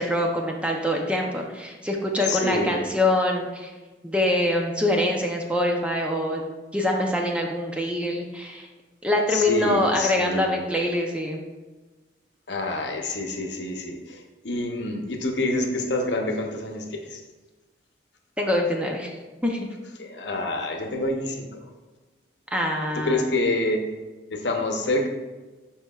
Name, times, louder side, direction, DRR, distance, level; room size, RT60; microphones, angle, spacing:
voice 1, 0.0-3.7 4.0-6.4 6.7-8.7 9.0-11.4 18.4-19.1 19.4-19.7 22.5-23.2, left 1 dB, 5° right, 1 dB, 0.6 m, -24 dB
voice 2, 2.3-2.9 9.3-10.6 12.5-17.2 20.0-21.7 22.9-23.9 24.3-25.1, left 2 dB, 75° left, 3 dB, 0.9 m, -27 dB
11.5 x 4.4 x 2.4 m, 1.2 s
head